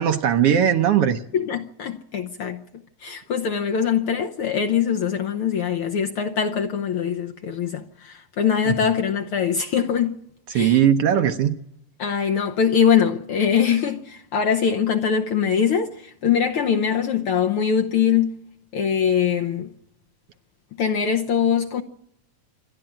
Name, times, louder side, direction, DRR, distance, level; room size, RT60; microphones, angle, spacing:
voice 1, 0.0-1.2 8.7-8.8 10.5-11.5, right 9 dB, 65° right, 1.6 m, -19 dB
voice 2, 1.3-2.6 3.0-10.2 10.5-10.8 12.0-18.3 18.7-19.7 20.8-21.8, left 7 dB, 65° left, 1.5 m, -22 dB
27.5 x 11.5 x 8.9 m
omnidirectional pair, 3.3 m